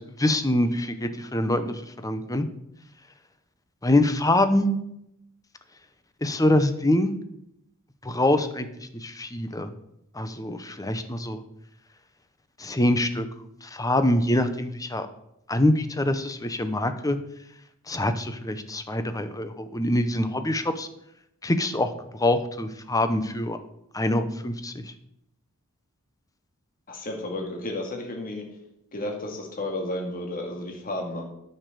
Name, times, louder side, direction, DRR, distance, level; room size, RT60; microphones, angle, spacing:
voice 1, 0.2-2.5 3.8-4.7 6.2-7.2 8.0-9.7 10.1-11.4 12.6-13.3 13.6-15.1 15.5-17.2 17.9-20.9 21.4-21.9 22.2-23.6 23.9-24.8, left 1 dB, 15° left, 9 dB, 0.9 m, -24 dB
voice 2, 26.9-28.4 28.9-31.2, left 1 dB, 40° left, 1 dB, 2.2 m, -32 dB
9.6 x 6.7 x 6.8 m, 0.78 s
head